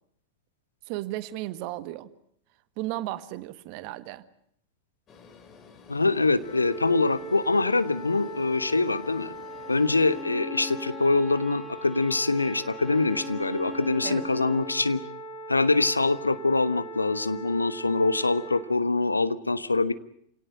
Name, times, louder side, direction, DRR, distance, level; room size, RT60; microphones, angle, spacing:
voice 1, 0.9-2.1 2.8-4.2 14.0-14.3, right 16 dB, 45° right, 1.6 m, -34 dB
sound 1, 5.1-10.2, left 5 dB, 25° left, 3.5 m, -51 dB
voice 2, 5.9-9.3 9.7-15.0 15.5-19.9, left 3 dB, 80° left, 1.2 m, -24 dB
sound 2, 6.4-18.6, right 1 dB, 60° left, 5.5 m, -40 dB
Bowed string instrument, 9.5-14.8, left 1 dB, 15° right, 2.4 m, -41 dB
28.5 x 18.0 x 9.9 m
figure-of-eight pair, 90°, 0 cm